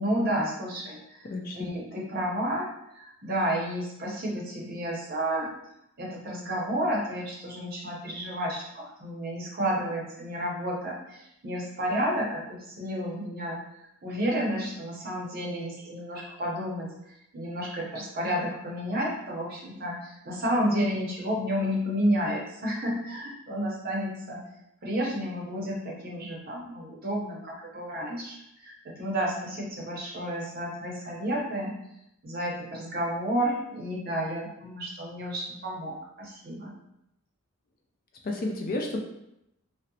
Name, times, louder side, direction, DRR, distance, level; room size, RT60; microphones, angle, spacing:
voice 1, 0.0-1.3 1.5-2.7 2.9-5.5 6.0-13.6 14.0-16.9 17.3-24.4 24.8-31.7 32.2-36.7, equal, 45° right, -3 dB, 0.6 m, -31 dB
voice 2, 1.3-1.7 38.2-39.0, left 2 dB, 40° left, 2 dB, 0.3 m, -31 dB
2.6 x 2.0 x 2.7 m, 0.82 s
head